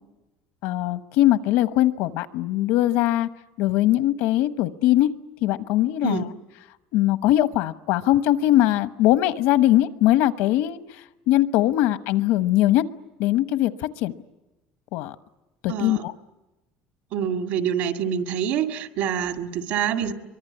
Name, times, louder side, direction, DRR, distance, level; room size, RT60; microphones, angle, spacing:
voice 1, 0.6-3.3 3.6-5.1 5.4-6.2 6.9-10.8 11.3-12.8 13.2-13.7 14.0-14.1 14.9-15.1 15.6-16.1, left 14 dB, 80° left, 12 dB, 1.0 m, -21 dB
voice 2, 15.7-16.0 17.1-20.1, right 8 dB, 60° right, 6 dB, 2.0 m, -26 dB
24.0 x 23.5 x 9.8 m, 1.0 s
cardioid pair, 175°, 4 cm